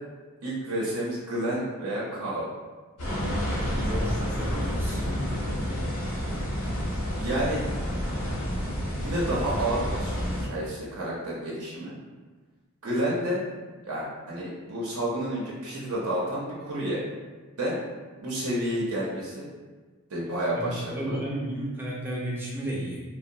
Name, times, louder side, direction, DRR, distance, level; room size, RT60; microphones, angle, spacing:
voice 1, 0.4-2.5 7.2-7.6 9.0-12.0 12.8-13.4 13.8-17.0 17.6-17.8 18.2-19.5 20.1-21.2, right 1 dB, 80° right, -5 dB, 0.6 m, -30 dB
sound 1, 3.0-10.5, equal, 75° left, 0.8 m, -29 dB
voice 2, 3.6-5.0 20.6-23.0, right 1 dB, 10° right, -5 dB, 0.4 m, -33 dB
2.7 x 2.0 x 2.6 m, 1.4 s
head